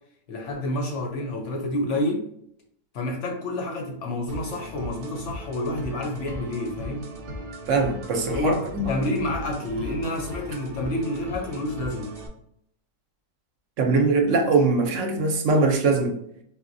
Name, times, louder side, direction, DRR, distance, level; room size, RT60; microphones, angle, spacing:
voice 1, 0.3-2.3 2.9-7.1 8.3-12.1, left 1 dB, 70° left, 1 dB, 0.7 m, -29 dB
sound 1, 4.3-12.3, equal, 90° right, 0.4 m, -38 dB
voice 2, 7.7-8.9 13.8-16.1, right 3 dB, 65° right, 4 dB, 0.8 m, -22 dB
4.2 x 2.0 x 2.5 m, 0.70 s
omnidirectional pair, 1.6 m